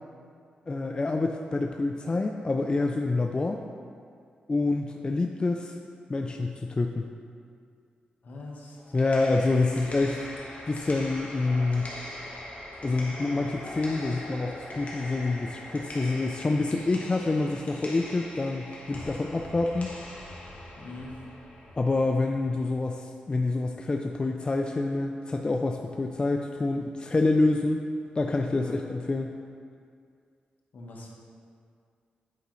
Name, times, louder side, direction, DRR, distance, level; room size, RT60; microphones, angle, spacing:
voice 1, 0.7-3.6 4.5-5.8 6.1-7.1 8.9-10.2 10.7-11.9 12.8-19.9 21.8-27.9 28.2-29.4, left 3 dB, 30° left, 3 dB, 0.3 m, -27 dB
voice 2, 8.2-8.8 20.8-21.1 28.5-28.8 30.7-31.1, left 2 dB, 65° left, -2 dB, 1.2 m, -42 dB
sound 1, 8.8-22.7, left 1 dB, 45° left, 1.4 m, -42 dB
8.3 x 4.9 x 3.1 m, 2.3 s
cardioid pair, 70°, 3 cm